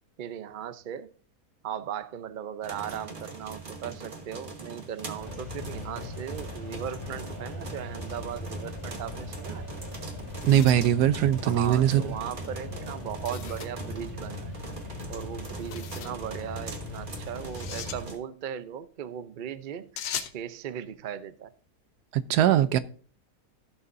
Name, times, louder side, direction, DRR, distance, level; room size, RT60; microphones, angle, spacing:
voice 1, 0.2-1.1 1.6-9.7 11.4-14.6 15.1-21.5 22.5-22.8, right 9 dB, 65° right, 0.4 m, -38 dB
sound 1, 2.6-18.2, right 3 dB, 35° right, 1.3 m, -42 dB
sound 2, 5.2-18.0, left 1 dB, 20° left, 1.4 m, -40 dB
sound 3, 10.2-11.8 13.2-13.8 15.5-16.2 17.4-18.0 20.0-20.4, left 9 dB, 75° left, 1.3 m, -40 dB
voice 2, 10.4-12.0 22.1-22.8, right 11 dB, 85° right, 1.2 m, -21 dB
15.5 x 6.9 x 2.6 m
omnidirectional pair, 1.7 m